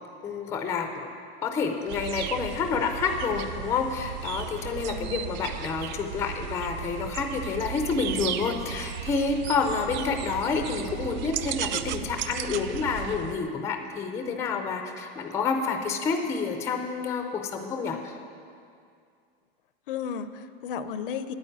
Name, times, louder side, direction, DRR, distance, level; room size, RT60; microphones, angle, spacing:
voice 1, 0.2-1.1 1.4-18.2, left 5 dB, 10° left, 5 dB, 0.5 m, -29 dB
sound 1, 1.9-13.3, right 10 dB, 45° right, 0.5 m, -35 dB
voice 2, 4.8-5.5 19.9-21.3, left 7 dB, 60° left, 12 dB, 0.7 m, -34 dB
9.6 x 9.2 x 8.7 m, 2.3 s
supercardioid pair, 165°, 31 cm